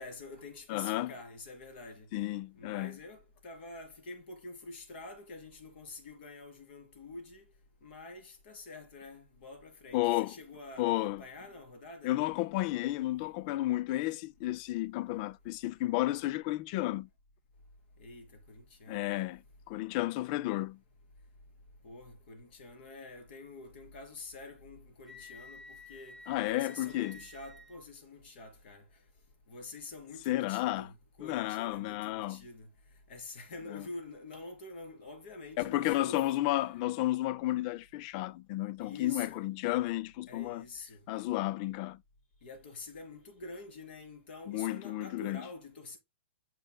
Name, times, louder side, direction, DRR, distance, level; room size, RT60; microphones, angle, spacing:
voice 1, 0.0-2.1 2.6-7.5 7.8-12.2 18.0-19.1 21.8-29.0 29.5-32.7 33.1-36.2 36.7-36.8 38.8-39.5 40.3-41.0 42.4-46.0, left 3 dB, 55° left, 3.7 m, -47 dB
voice 2, 0.7-1.1 2.1-3.0 9.9-10.3 10.8-11.2 12.0-17.1 18.9-19.4 19.7-20.8 26.3-27.2 30.3-30.9 31.2-32.4 33.7-33.8 35.6-40.6 41.1-42.0 44.5-45.4, left 16 dB, 40° left, 0.4 m, -32 dB
Wind instrument woodwind instrument, 25.0-27.9, left 2 dB, 5° left, 2.2 m, -52 dB
7.7 x 6.5 x 2.2 m
hypercardioid pair, 135°, 7 cm